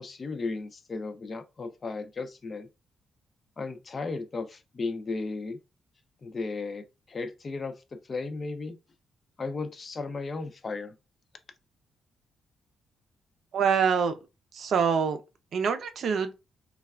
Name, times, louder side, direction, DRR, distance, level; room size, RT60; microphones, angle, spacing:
voice 1, 0.0-2.7 3.6-5.6 6.2-8.8 9.4-10.9, left 3 dB, 35° left, 0.5 m, -35 dB
voice 2, 13.5-14.1 14.5-15.2 15.5-16.3, right 6 dB, 60° right, 0.5 m, -25 dB
3.2 x 2.3 x 2.3 m
cardioid pair, 140°, 0 cm